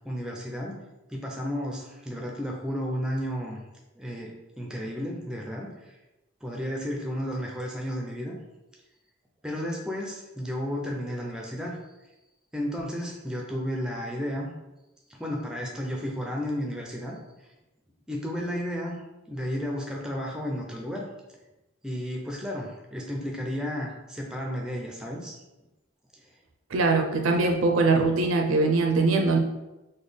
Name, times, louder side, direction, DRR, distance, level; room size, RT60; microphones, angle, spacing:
voice 1, 0.0-0.8 1.1-3.6 4.0-5.9 6.4-8.4 9.4-11.8 12.5-14.5 15.1-17.2 18.1-19.0 19.3-21.1 21.8-25.4 27.5-27.6, equal, 5° right, -1 dB, 0.4 m, -33 dB
voice 2, 26.7-29.4, right 3 dB, 75° right, 3 dB, 0.5 m, -22 dB
3.8 x 2.1 x 3.3 m, 1.0 s
head